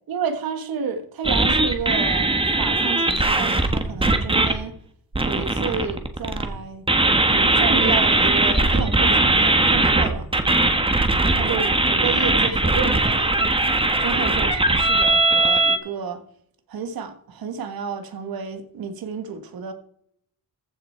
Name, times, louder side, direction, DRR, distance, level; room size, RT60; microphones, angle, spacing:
voice 1, 0.1-4.7 5.2-6.8 7.2-10.3 11.4-13.5 14.0-16.2 16.7-19.7, right 6 dB, 75° right, 8 dB, 1.7 m, -31 dB
sound 1, 1.2-4.5 5.1-6.5 6.9-15.8, right 2 dB, 15° right, 1.4 m, -19 dB
15.0 x 6.6 x 4.5 m, 0.67 s
cardioid pair, 110°, 36 cm